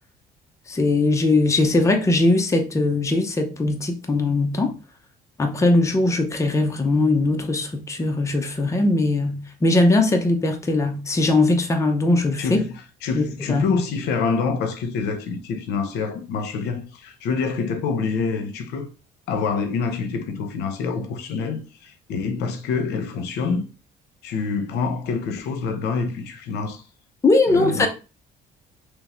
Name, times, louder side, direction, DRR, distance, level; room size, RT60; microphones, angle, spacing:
voice 1, 0.7-4.8 5.4-12.6 13.1-13.7 27.2-27.9, left 2 dB, 15° left, 0.7 m, -20 dB
voice 2, 13.0-18.9 19.3-23.7 24.2-26.8 27.5-27.9, left 5 dB, 80° left, 0.7 m, -26 dB
3.6 x 3.1 x 3.0 m
cardioid pair, 110°, 17 cm